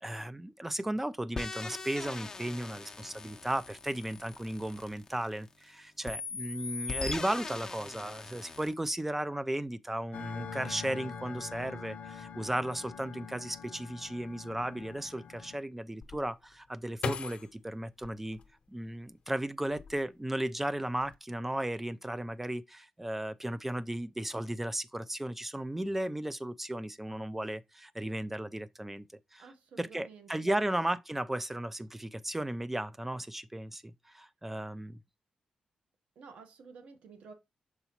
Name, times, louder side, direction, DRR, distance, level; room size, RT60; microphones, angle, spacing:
voice 1, 0.0-18.4 18.7-29.0 29.3-29.4 29.8-35.0, right 1 dB, 10° right, 0.5 m, -35 dB
sound 1, 1.4-5.6 6.1-8.8, left 4 dB, 25° left, 0.7 m, -41 dB
sound 2, 10.1-15.6, left 6 dB, 90° left, 0.7 m, -44 dB
sound 3, 16.0-19.1 19.6-20.4 20.7-21.1, left 5 dB, 60° left, 0.8 m, -40 dB
voice 2, 29.4-30.6 36.1-37.3, right 5 dB, 85° right, 1.2 m, -52 dB
6.9 x 4.7 x 2.9 m
cardioid pair, 100°, 2 cm